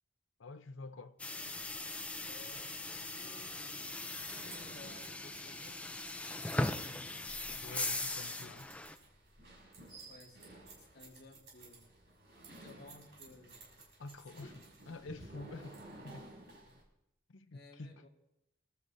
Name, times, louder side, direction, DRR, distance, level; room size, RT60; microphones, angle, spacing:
voice 1, 0.4-1.2 7.6-8.7 14.0-14.5 14.9-16.2 17.3-17.9, left 3 dB, 80° left, 0.7 m, -48 dB
sound 1, 1.2-9.0, left 2 dB, 5° left, 0.4 m, -39 dB
sound 2, 1.3-16.8, right 2 dB, 60° right, 6.1 m, -55 dB
voice 2, 2.3-5.9 6.3-7.1 10.1-11.9 12.5-13.6 14.3-14.5 17.5-18.1, left 2 dB, 55° left, 1.9 m, -57 dB
27.0 x 12.5 x 2.7 m
head